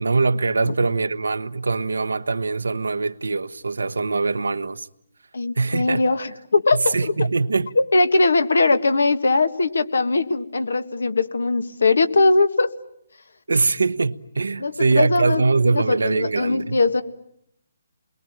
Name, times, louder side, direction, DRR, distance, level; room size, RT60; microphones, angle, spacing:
voice 1, 0.0-4.9 5.6-6.0 6.7-7.8 13.5-16.8, right 3 dB, 80° right, 1.1 m, -22 dB
voice 2, 5.3-7.1 7.8-12.7 14.6-17.0, left 3 dB, 80° left, 1.8 m, -20 dB
29.0 x 22.0 x 9.0 m
figure-of-eight pair, 145°, 0 cm